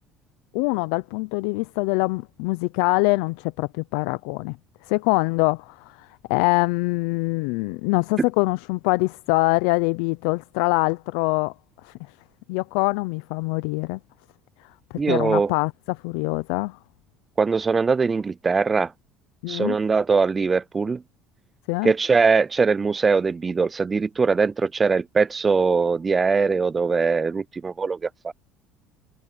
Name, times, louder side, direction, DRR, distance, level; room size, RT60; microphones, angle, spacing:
voice 1, 0.5-4.6 4.8-11.5 11.8-11.9 12.5-14.0 14.9-16.8 19.4-19.8 21.7-21.9, left 25 dB, 85° left, 0.5 m, -24 dB
voice 2, 15.0-15.5 17.4-18.9 19.5-21.0 21.8-28.3, right 4 dB, 25° right, 0.3 m, -21 dB
supercardioid pair, 100°, 0 cm